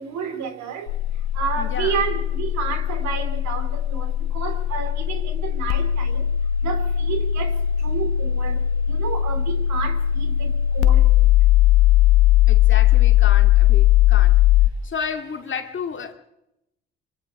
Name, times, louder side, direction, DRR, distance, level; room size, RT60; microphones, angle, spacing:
voice 1, 0.0-6.3 6.6-11.3 12.3-12.4, right 7 dB, 65° right, 2.8 m, -31 dB
sound 1, 0.9-14.7, left 12 dB, 75° left, 0.9 m, -19 dB
voice 2, 1.6-2.0 12.5-14.4 14.8-16.1, left 6 dB, 40° left, 2.2 m, -31 dB
24.5 x 24.0 x 4.8 m
hypercardioid pair, 55°, 29 cm